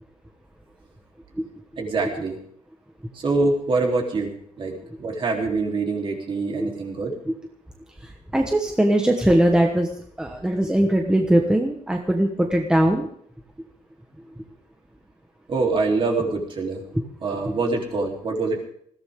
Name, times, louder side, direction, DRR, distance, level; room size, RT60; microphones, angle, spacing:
voice 1, 1.8-2.4 3.1-7.2 15.5-16.8 17.2-18.7, right 3 dB, 40° right, 1 dB, 3.6 m, -25 dB
voice 2, 8.0-9.9 10.2-13.1 17.4-17.6, right 1 dB, 5° right, 3 dB, 1.3 m, -20 dB
20.5 x 16.0 x 3.8 m, 0.64 s
wide cardioid pair, 170°, 13 cm